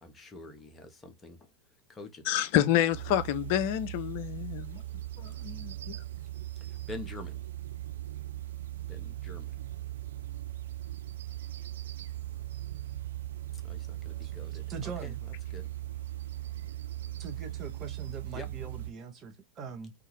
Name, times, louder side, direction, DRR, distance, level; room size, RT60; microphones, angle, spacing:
voice 1, 0.0-1.4 1.9-2.3 6.7-7.4 8.9-9.6 13.6-14.7 15.0-15.1 15.5-15.7 18.3-18.5, left 2 dB, 15° left, 0.7 m, -46 dB
voice 2, 2.3-4.8 5.2-5.9, left 11 dB, 45° left, 0.4 m, -28 dB
sound 1, 2.9-18.9, right 14 dB, 60° right, 0.3 m, -39 dB
voice 3, 14.7-15.2 17.2-19.9, right 5 dB, 25° right, 0.8 m, -42 dB
2.7 x 2.3 x 2.9 m
figure-of-eight pair, 90°, 0 cm